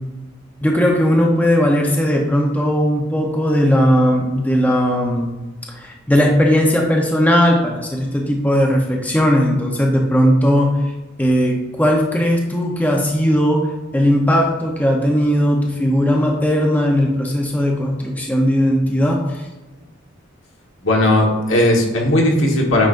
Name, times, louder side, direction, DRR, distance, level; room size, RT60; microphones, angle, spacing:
voice 1, 0.6-5.3 5.7-10.9 11.2-19.5, equal, 10° left, -1 dB, 0.7 m, -17 dB
voice 2, 20.8-22.9, left 1 dB, 75° left, 0 dB, 1.5 m, -16 dB
9.0 x 5.0 x 2.6 m, 1.1 s
head